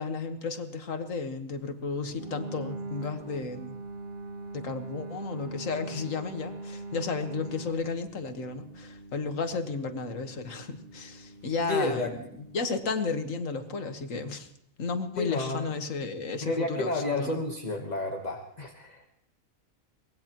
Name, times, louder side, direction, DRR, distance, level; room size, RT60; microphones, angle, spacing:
voice 1, 0.0-3.8 4.5-12.1 12.5-14.5 14.8-17.4, left 4 dB, 70° left, 7 dB, 1.8 m, -33 dB
sound 1, 2.1-12.9, right 2 dB, 45° right, 3.5 m, -42 dB
voice 2, 11.7-12.1 15.2-15.7 16.4-19.1, left 2 dB, 30° left, 3 dB, 1.3 m, -31 dB
24.0 x 20.0 x 3.0 m, 0.73 s
omnidirectional pair, 1.4 m